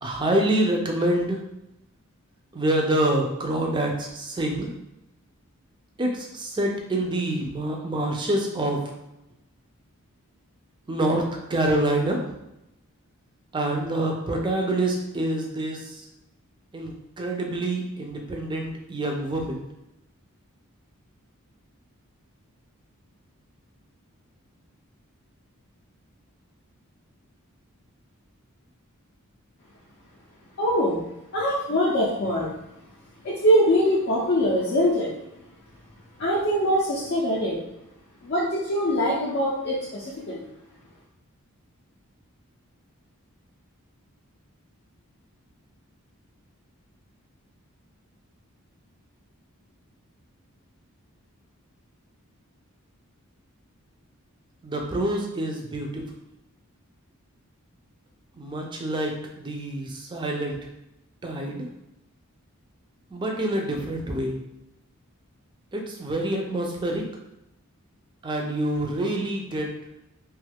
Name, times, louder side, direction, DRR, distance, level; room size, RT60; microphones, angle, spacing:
voice 1, 0.0-1.4 2.5-4.7 6.0-8.9 10.9-12.2 13.5-16.0 16.7-19.7 54.6-56.0 58.4-60.6 61.2-61.6 63.1-64.4 65.7-67.0 68.2-69.7, right 1 dB, 20° right, 1 dB, 0.4 m, -26 dB
voice 2, 30.6-31.0 31.3-32.5 33.2-35.1 36.2-37.6 38.2-40.5, equal, 50° left, -6 dB, 0.5 m, -23 dB
2.9 x 2.3 x 3.3 m, 0.88 s
head